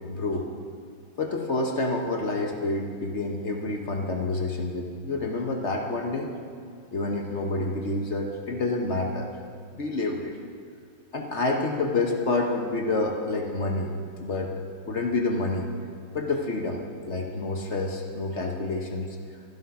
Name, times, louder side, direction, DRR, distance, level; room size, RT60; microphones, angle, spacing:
voice 1, 0.1-0.4 1.2-6.3 6.9-9.3 9.7-10.4 11.1-13.9 14.2-14.5 14.9-15.7 16.1-16.8 17.1-19.2, left 2 dB, 45° left, 2 dB, 1.0 m, -28 dB
13.0 x 11.5 x 5.7 m, 2.2 s
omnidirectional pair, 2.3 m